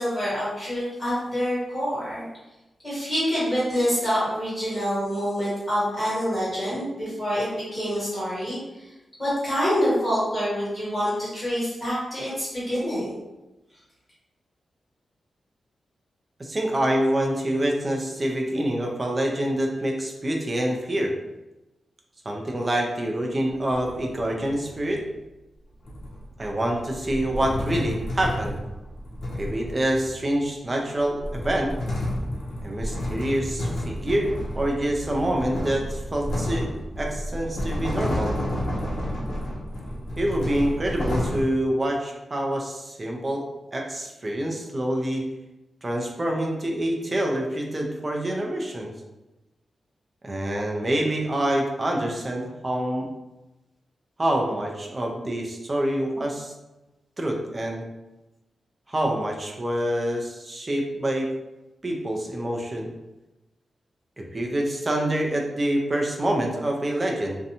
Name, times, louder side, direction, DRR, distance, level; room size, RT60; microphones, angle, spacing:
voice 1, 0.0-2.2 2.8-8.6 9.2-13.1, equal, 15° left, -10 dB, 1.4 m, -26 dB
voice 2, 16.4-21.1 22.3-25.0 26.4-28.6 29.3-31.7 32.6-36.7 37.0-38.4 40.2-43.4 43.7-45.2 45.8-48.9 50.2-53.1 54.2-56.5 57.2-57.8 58.9-61.3 61.8-62.9 64.2-67.4, right 1 dB, 25° right, 1 dB, 0.4 m, -26 dB
sound 1, 23.5-24.9 25.9-30.4 31.0-41.4, left 1 dB, 75° left, 0.6 m, -31 dB
2.5 x 2.2 x 2.7 m, 1.0 s
wide cardioid pair, 160°, 0 cm